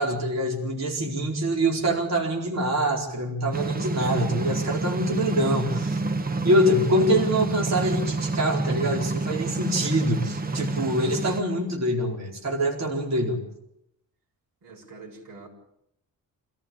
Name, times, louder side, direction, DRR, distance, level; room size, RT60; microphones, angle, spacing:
voice 1, 0.0-6.0 6.4-13.4, equal, 50° right, 0 dB, 4.5 m, -25 dB
sound 1, 3.5-11.4, right 3 dB, 25° right, 1.1 m, -28 dB
voice 2, 10.3-10.8 14.6-15.5, right 1 dB, 70° right, 2 dB, 6.8 m, -43 dB
27.0 x 16.0 x 8.7 m, 0.80 s
wide cardioid pair, 165°, 35 cm